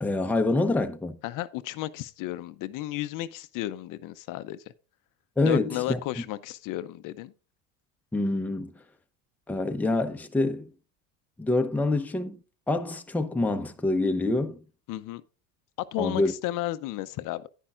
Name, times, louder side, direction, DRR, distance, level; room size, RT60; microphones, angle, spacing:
voice 1, 0.0-1.2 5.4-6.0 8.1-8.7 9.5-10.7 11.4-12.4 12.7-14.6 16.0-16.3, left 2 dB, 5° left, 0.6 m, -26 dB
voice 2, 1.2-4.6 5.4-7.3 14.9-15.2 15.9-17.5, left 15 dB, 55° left, 0.6 m, -33 dB
10.0 x 10.0 x 2.4 m
cardioid pair, 120°, 38 cm